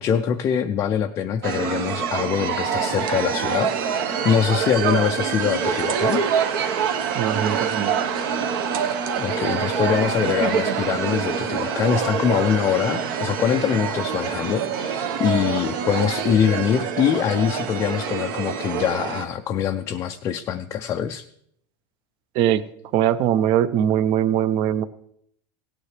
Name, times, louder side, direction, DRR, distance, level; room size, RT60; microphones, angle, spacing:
voice 1, 0.0-6.2 9.2-21.2, left 8 dB, 25° left, 5 dB, 0.4 m, -23 dB
sound 1, 1.4-19.3, right 7 dB, 70° right, 1.1 m, -25 dB
voice 2, 7.1-7.9 22.4-22.6 22.9-24.8, right 10 dB, 40° right, 16 dB, 0.5 m, -21 dB
17.0 x 9.3 x 3.3 m, 0.71 s
supercardioid pair, 160°, 12 cm